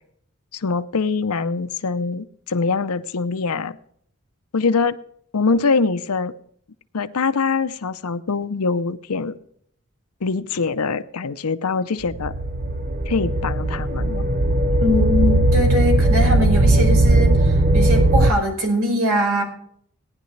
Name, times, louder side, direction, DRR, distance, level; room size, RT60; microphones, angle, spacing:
voice 1, 0.5-3.8 4.5-4.9 5.3-6.3 6.9-9.4 10.2-12.3 13.1-14.3, left 4 dB, 90° left, 0.7 m, -23 dB
sound 1, 12.1-18.3, right 1 dB, 40° right, 0.7 m, -18 dB
voice 2, 14.8-19.4, equal, 75° right, 4.9 m, -22 dB
18.0 x 10.5 x 3.3 m
head